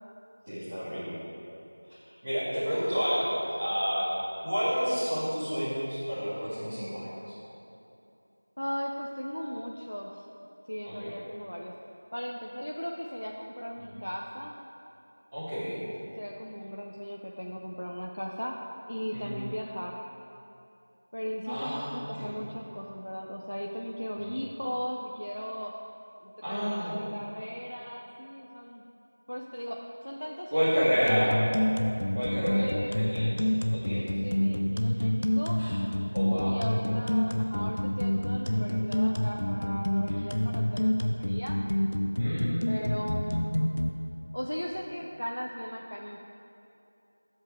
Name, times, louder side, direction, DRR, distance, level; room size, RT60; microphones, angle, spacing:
voice 1, 0.5-1.2 2.2-3.3 3.6-4.1 4.4-7.1 10.8-11.1 13.8-13.9 15.3-15.8 19.1-19.3 21.5-22.3 24.2-24.3 26.4-27.0 30.5-31.3 32.1-32.7 32.9-34.1 35.6-35.8 36.1-36.6 40.1-40.2 42.2-42.8, equal, 10° right, -16 dB, 2.2 m, -30 dB
voice 2, 8.6-10.2 10.7-11.7 12.1-14.6 15.8-18.6 18.9-20.0 21.1-25.7 26.2-28.8 29.3-30.7 31.0-31.4 32.5-33.0 33.9-35.6 36.5-41.6 42.7-43.5 44.3-46.2, equal, 75° left, -1 dB, 1.0 m, -37 dB
sound 1, 31.1-43.9, left 1 dB, 40° left, 0.7 m, -27 dB
22.5 x 7.9 x 3.6 m, 2.8 s
figure-of-eight pair, 175°, 0 cm